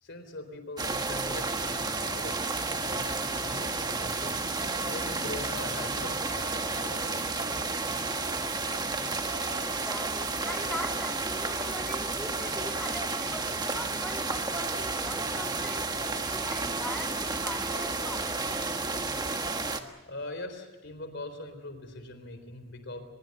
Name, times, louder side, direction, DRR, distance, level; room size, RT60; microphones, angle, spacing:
voice 1, 0.0-2.5 2.8-4.4 4.9-7.4 20.1-23.0, left 2 dB, 60° left, 8 dB, 4.0 m, -42 dB
sound 1, 0.8-19.8, right 3 dB, 20° right, 1.4 m, -31 dB
voice 2, 9.6-15.9 16.2-18.4, equal, 5° left, 3 dB, 2.1 m, -41 dB
23.5 x 22.0 x 7.9 m, 1.1 s
head